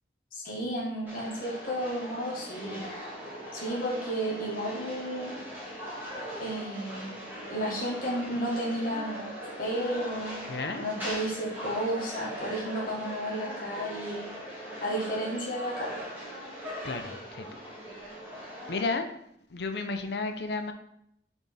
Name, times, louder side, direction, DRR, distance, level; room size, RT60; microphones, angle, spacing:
voice 1, 0.3-2.8 3.5-5.4 6.4-7.1 7.5-9.2 9.6-10.3 10.8-16.0, equal, 50° left, -5 dB, 1.5 m, -32 dB
sound 1, 1.1-18.9, equal, 10° right, 1.9 m, -40 dB
voice 2, 10.5-10.8 16.8-17.6 18.7-19.1 19.5-20.7, left 3 dB, 70° left, 7 dB, 0.6 m, -32 dB
6.9 x 3.6 x 4.1 m, 0.76 s
head